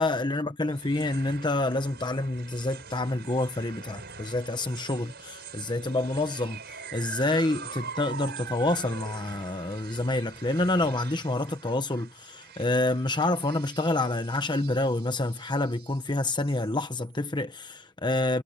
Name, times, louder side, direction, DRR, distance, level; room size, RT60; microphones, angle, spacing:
voice 1, 0.0-18.4, left 2 dB, 20° left, 1.0 m, -28 dB
sound 1, 0.7-17.1, right 6 dB, 50° right, 6.0 m, -44 dB
head